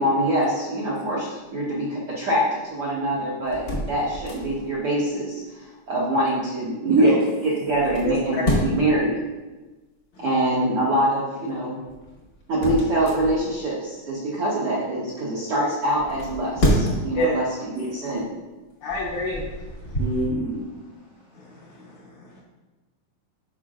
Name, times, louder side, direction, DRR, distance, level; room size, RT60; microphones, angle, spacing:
voice 1, 0.0-7.2 7.4-9.2 10.2-11.8 12.5-18.3, right 1 dB, 65° right, -7 dB, 1.3 m, -25 dB
sound 1, 3.4-4.8 7.7-9.0 11.9-13.7 16.0-17.2 17.8-18.0 18.7-20.3, equal, 45° left, 1.1 m, -27 dB
voice 2, 6.9-7.4 17.7-17.9 20.0-20.6, right 2 dB, 80° right, -5 dB, 0.9 m, -21 dB
voice 3, 8.0-8.6 17.1-17.3 18.8-20.3 21.4-22.4, left 1 dB, 70° left, -3 dB, 1.9 m, -30 dB
12.5 x 5.0 x 2.5 m, 1.2 s
omnidirectional pair, 4.2 m